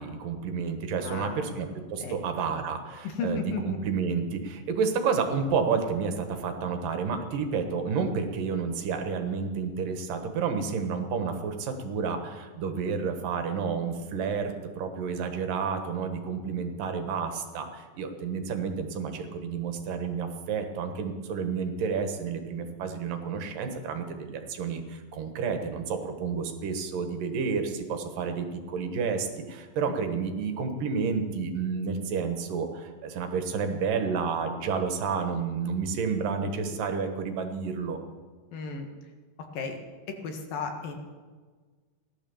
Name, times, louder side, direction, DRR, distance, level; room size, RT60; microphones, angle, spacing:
voice 1, 0.0-38.0, right 5 dB, 75° right, 6 dB, 3.0 m, -30 dB
voice 2, 1.0-1.6 2.0-2.2 2.5-2.6 3.0-3.8 29.9-30.0 38.5-38.9 39.5-39.8 40.1-40.9, left 4 dB, 85° left, 4 dB, 3.5 m, -34 dB
17.0 x 11.5 x 7.1 m, 1.4 s
omnidirectional pair, 3.9 m